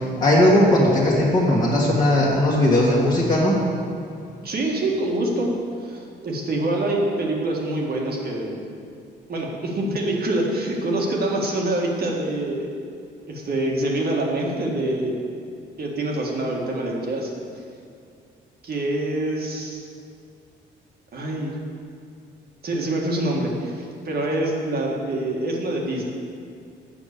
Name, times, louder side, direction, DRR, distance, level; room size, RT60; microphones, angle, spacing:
voice 1, 0.2-3.5, left 1 dB, 20° left, -6 dB, 1.7 m, -18 dB
voice 2, 4.4-5.5 5.8-8.6 9.3-12.7 13.3-15.1 15.8-17.3 18.6-19.8 21.1-21.6 22.6-26.0, right 1 dB, 50° right, -1 dB, 1.7 m, -25 dB
7.4 x 6.0 x 6.7 m, 2.4 s
cardioid pair, 90°, 20 cm